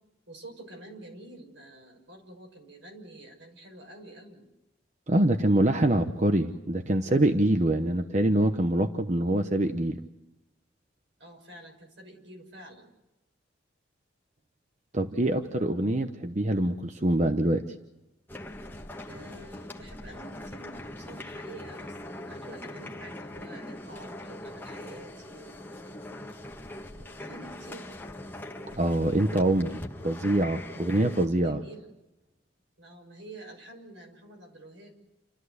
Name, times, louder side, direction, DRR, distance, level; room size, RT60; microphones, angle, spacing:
voice 1, 0.3-4.5 11.2-12.9 19.1-25.9 26.8-27.9 31.3-31.9 32.8-34.9, right 1 dB, 80° right, 2 dB, 6.4 m, -48 dB
voice 2, 5.1-10.0 14.9-17.7 28.8-31.6, right 1 dB, 40° right, 6 dB, 0.9 m, -25 dB
sound 1, 18.3-31.3, left 1 dB, 10° left, 1.2 m, -42 dB
29.5 x 13.5 x 8.1 m, 0.97 s
head